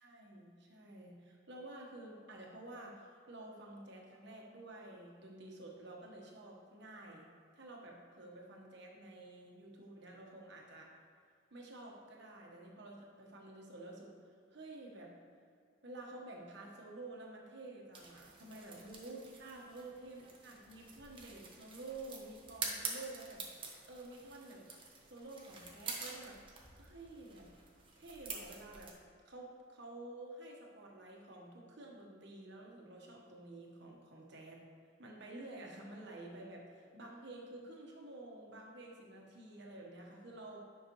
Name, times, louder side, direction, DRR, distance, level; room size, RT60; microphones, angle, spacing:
voice 1, 0.0-10.9 11.5-14.1 14.5-15.1 15.8-24.6 25.1-26.4 26.8-27.5 28.0-28.9 29.2-34.6 35.0-40.6, right 2 dB, 65° right, -1 dB, 1.3 m, -51 dB
sound 1, 17.9-28.9, right 4 dB, 25° right, 0.9 m, -47 dB
9.6 x 6.0 x 3.1 m, 2.3 s
head